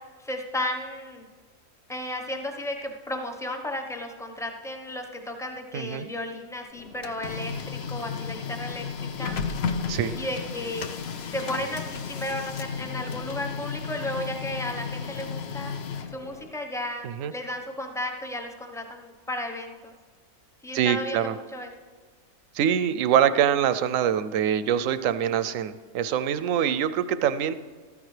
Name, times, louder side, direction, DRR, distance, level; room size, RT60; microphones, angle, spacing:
voice 1, 0.2-1.3 1.9-9.4 10.2-10.9 11.3-15.7 16.1-19.9 20.6-21.2 21.5-21.7, left 1 dB, 5° left, 2 dB, 0.8 m, -34 dB
voice 2, 5.7-6.1 9.9-10.2 17.0-17.3 20.7-21.3 22.5-27.5, right 9 dB, 70° right, 13 dB, 0.9 m, -24 dB
Printer, 6.7-16.5, left 6 dB, 60° left, 0.8 m, -33 dB
13.5 x 13.5 x 3.3 m, 1.5 s
omnidirectional pair, 1.5 m